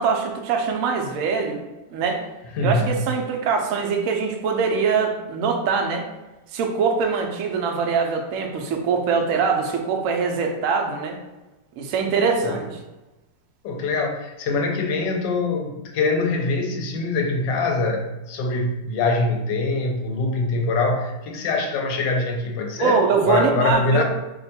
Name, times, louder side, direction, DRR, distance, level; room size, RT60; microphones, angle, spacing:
voice 1, 0.0-1.6 1.9-2.2 2.6-6.0 6.5-11.2 11.8-12.7 22.8-24.0, right 5 dB, 75° right, 3 dB, 0.7 m, -23 dB
voice 2, 2.5-3.0 12.4-12.6 13.6-24.0, left 3 dB, 85° left, 3 dB, 1.2 m, -24 dB
3.0 x 2.1 x 4.1 m, 1.1 s
omnidirectional pair, 1.9 m